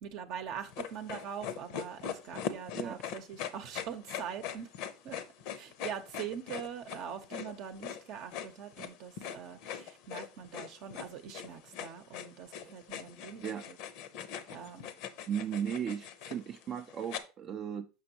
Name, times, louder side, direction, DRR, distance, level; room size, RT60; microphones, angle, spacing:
voice 1, 0.0-4.7 5.0-5.2 5.6-13.8 14.5-14.9, right 8 dB, 55° right, 0.8 m, -43 dB
sound 1, 0.7-17.2, left 8 dB, 60° left, 0.7 m, -41 dB
voice 2, 2.7-3.0 12.6-12.7 13.4-13.7 15.3-17.9, right 8 dB, 35° right, 0.4 m, -36 dB
6.1 x 6.1 x 2.8 m
supercardioid pair, 135°, 0 cm